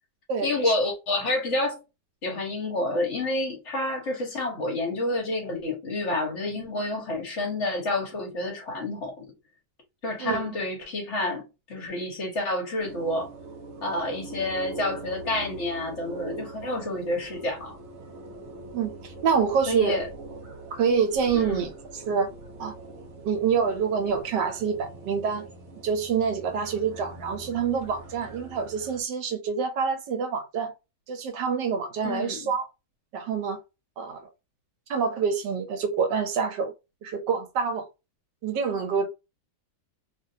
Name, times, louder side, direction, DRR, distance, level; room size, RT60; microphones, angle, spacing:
voice 1, 0.4-1.8 2.2-9.2 10.0-13.3 13.8-17.8 19.7-20.1 21.3-21.7 32.0-32.5, left 2 dB, 45° left, 1.2 m, -29 dB
sound 1, 12.8-29.0, right 2 dB, 55° right, 0.9 m, -42 dB
voice 2, 18.7-20.0 20.7-22.3 22.6-22.7 23.2-25.5 25.8-30.7 31.1-32.7 33.1-33.6 34.0-34.3 34.9-36.7 37.0-37.8 38.4-39.1, right 6 dB, 90° right, 1.4 m, -26 dB
3.1 x 2.5 x 2.7 m
omnidirectional pair, 1.8 m